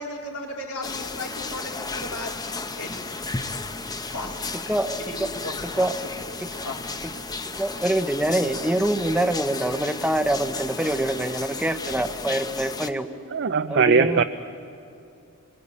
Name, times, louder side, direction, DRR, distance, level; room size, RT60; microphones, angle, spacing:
voice 1, 0.0-2.4 2.7-3.2 4.1-4.4 5.1-5.9 6.2-6.3 6.6-6.8, left 2 dB, 85° left, 4.1 m, -35 dB
sound 1, 0.8-12.9, left 3 dB, 20° left, 0.8 m, -34 dB
voice 2, 4.7-5.3 5.8-5.9 6.4-6.6 7.5-13.1 13.7-14.2, right 1 dB, 5° right, 0.9 m, -25 dB
voice 3, 13.3-14.2, right 5 dB, 55° right, 0.5 m, -20 dB
28.0 x 22.5 x 8.6 m
head